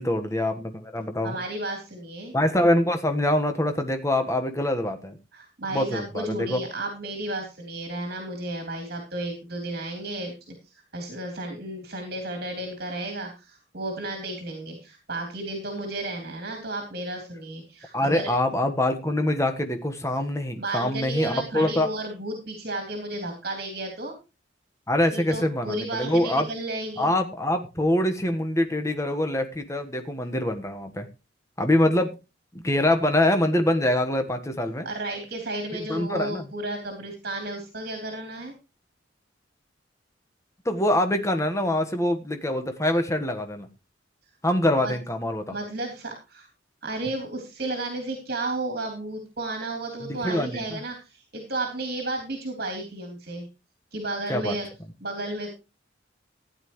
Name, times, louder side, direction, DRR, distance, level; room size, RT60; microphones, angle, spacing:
voice 1, 0.0-1.4 2.3-5.2 5.7-6.6 17.9-21.9 24.9-26.5 27.0-31.1 31.6-32.1 32.5-34.9 35.7-36.5 40.6-43.7 44.4-45.5 50.0-50.8 54.3-54.6, left 1 dB, 15° left, 6 dB, 1.3 m, -24 dB
voice 2, 1.2-2.3 5.3-10.3 10.9-18.3 20.6-24.1 25.1-27.1 34.8-38.5 44.8-44.9 45.5-46.5 46.8-53.5 53.9-54.7 55.0-55.5, right 2 dB, 55° right, 3 dB, 3.3 m, -33 dB
15.0 x 10.0 x 3.1 m, 0.28 s
head